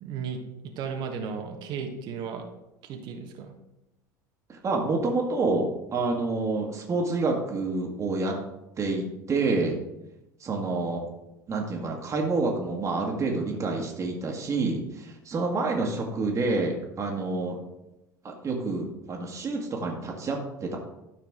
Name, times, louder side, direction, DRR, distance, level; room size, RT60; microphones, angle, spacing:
voice 1, 0.0-2.5 2.8-3.5, right 6 dB, 50° right, 3 dB, 1.3 m, -35 dB
voice 2, 4.5-8.4 8.8-9.8 10.4-11.0 11.5-17.6 18.2-20.8, right 3 dB, 30° right, 0 dB, 1.7 m, -28 dB
12.5 x 5.8 x 3.7 m, 0.92 s
figure-of-eight pair, 70°, 10 cm